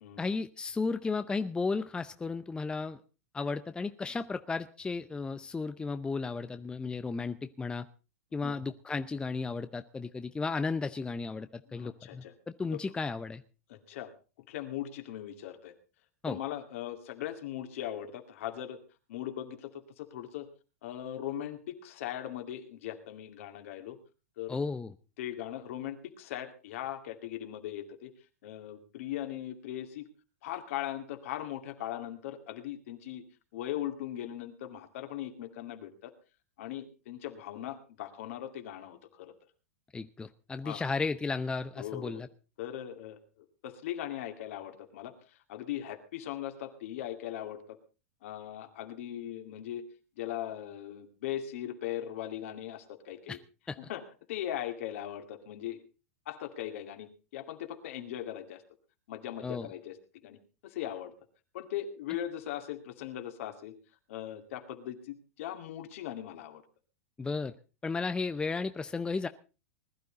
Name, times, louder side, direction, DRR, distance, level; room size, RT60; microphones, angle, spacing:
voice 1, 0.2-3.0 3.3-7.9 8.3-13.4 16.2-16.4 24.5-24.9 39.9-42.3 53.3-53.4 53.7-53.8 59.4-59.7 67.2-67.5 67.8-69.3, left 4 dB, 10° left, 10 dB, 0.6 m, -34 dB
voice 2, 11.7-12.3 12.7-12.8 13.7-14.1 14.5-15.7 16.2-18.8 19.1-20.5 20.8-24.0 24.4-24.6 25.2-28.1 28.4-30.1 30.4-33.2 33.5-36.1 36.6-39.3 40.6-40.9 41.8-42.3 42.6-47.8 48.2-49.9 50.2-53.4 53.8-54.0 54.3-55.8 56.3-58.6 59.1-60.0 60.2-61.1 61.5-63.7 64.1-66.6, left 11 dB, 60° left, 5 dB, 2.4 m, -39 dB
20.0 x 12.0 x 4.0 m, 0.33 s
hypercardioid pair, 105°, 8 cm